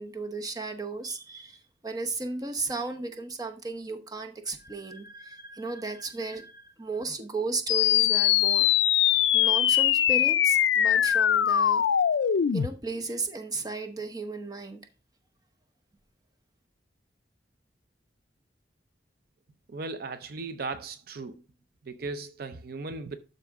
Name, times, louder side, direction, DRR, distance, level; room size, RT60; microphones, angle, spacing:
voice 1, 0.0-11.8 12.5-14.8, right 3 dB, 20° right, 0.9 m, -35 dB
sound 1, 7.7-12.7, left 10 dB, 70° left, 0.4 m, -22 dB
voice 2, 19.7-21.3 21.9-23.2, right 3 dB, 55° right, 0.5 m, -37 dB
12.0 x 4.1 x 3.6 m
head